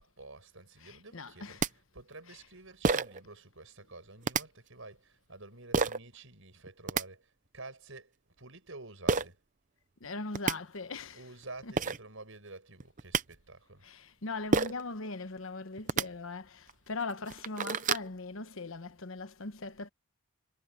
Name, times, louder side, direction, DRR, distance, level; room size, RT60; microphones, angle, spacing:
voice 1, 0.0-9.4 11.1-13.9, right 2 dB, 60° right, 7.0 m, -50 dB
voice 2, 0.8-1.7 2.3-2.4 10.0-11.3 11.6-11.7 13.8-19.9, left 3 dB, 65° left, 1.1 m, -40 dB
sound 1, 1.3-1.4 1.6-1.7 2.8-3.2 4.2-4.4 5.7-6.0 6.7-7.0 9.1-9.3 10.0-10.1 10.3-10.6 11.4-11.5 11.8-12.0 12.8-13.2 14.5-14.8 15.8-16.1 16.7-16.8 17.2-18.1, right 4 dB, 35° right, 0.6 m, -28 dB
head